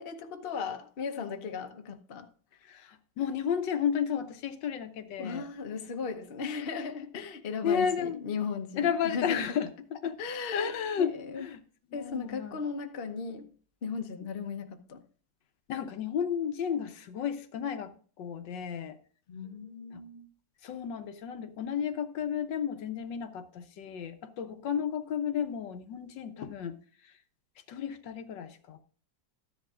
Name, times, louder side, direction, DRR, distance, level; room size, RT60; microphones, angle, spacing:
voice 1, 0.0-2.3 5.2-9.6 10.2-10.7 11.0-11.5 11.9-13.5 13.8-15.0 19.3-20.3, left 5 dB, 40° left, 0.9 m, -37 dB
voice 2, 2.6-5.5 7.6-8.2 8.8-9.7 10.0-10.1 10.5-11.6 11.9-12.6 15.7-17.9 18.2-19.0 19.9-20.0 20.6-26.8 27.0-27.1 27.7-28.8, left 8 dB, 75° left, 1.5 m, -32 dB
13.5 x 10.5 x 2.5 m
omnidirectional pair, 2.0 m